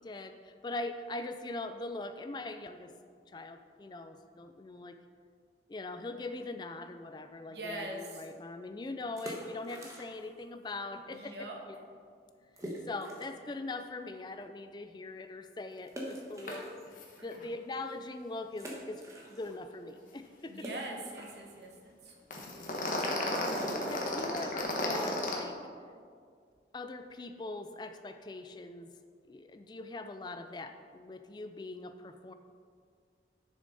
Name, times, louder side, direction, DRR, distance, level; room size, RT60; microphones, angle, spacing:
voice 1, 0.0-2.9 3.3-5.0 5.7-11.8 12.9-16.6 17.2-19.0 19.3-20.7 23.9-25.6 26.7-28.9 29.3-32.3, left 2 dB, 25° left, 8 dB, 0.4 m, -41 dB
voice 2, 7.5-8.2 11.1-11.6 17.2-17.4 20.5-24.0, right 1 dB, 75° right, 0 dB, 1.5 m, -45 dB
sound 1, 9.0-10.4 10.7-10.8 11.4-11.5 11.7-11.8 12.6-13.5 14.0-14.1 15.9-17.2 17.7-17.8 18.5-19.7 20.0-25.5, equal, 20° right, 1.2 m, -46 dB
sound 2, 16.5-16.6 16.9-17.0 17.3-17.4 22.3-25.3, left 1 dB, 50° left, 1.3 m, -33 dB
10.5 x 6.4 x 4.1 m, 2.1 s
head